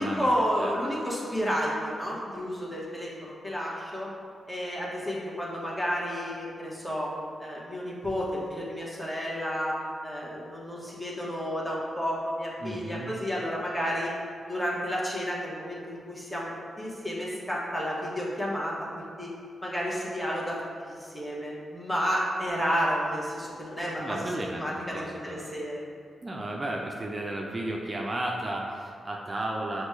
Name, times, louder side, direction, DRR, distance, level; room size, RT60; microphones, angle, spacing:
voice 1, 0.0-4.1 4.5-7.1 7.4-9.8 10.0-14.1 14.5-16.5 16.8-19.3 19.6-20.6 20.9-25.8, equal, 20° left, -5 dB, 1.3 m, -31 dB
voice 2, 12.6-13.1 24.0-25.5 26.2-29.8, right 1 dB, 35° right, -1 dB, 0.5 m, -33 dB
5.9 x 2.3 x 3.2 m, 2.2 s
supercardioid pair, 40°, 0 cm